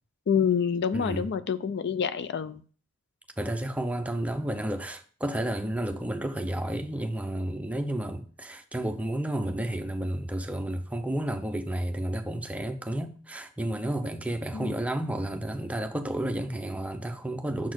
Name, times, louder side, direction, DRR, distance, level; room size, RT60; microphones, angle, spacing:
voice 1, 0.3-2.6 14.5-14.8, left 7 dB, 50° left, 0.4 m, -27 dB
voice 2, 0.9-1.3 3.4-17.7, right 1 dB, 5° right, 0.6 m, -31 dB
7.0 x 4.2 x 6.4 m
head